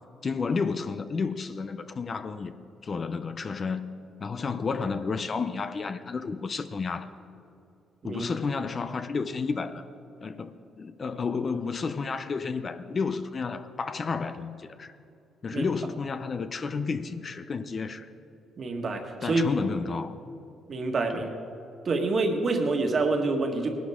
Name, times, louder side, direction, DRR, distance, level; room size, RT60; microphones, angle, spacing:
voice 1, 0.2-2.5 2.8-3.9 4.2-7.1 8.0-9.8 10.2-15.0 15.4-18.1 19.2-20.2 21.1-21.2, left 5 dB, 40° left, 0.6 m, -31 dB
voice 2, 18.6-19.4 20.7-21.3 21.9-23.7, right 3 dB, 45° right, 1.7 m, -27 dB
19.0 x 11.5 x 3.6 m
cardioid pair, 90°, 0 cm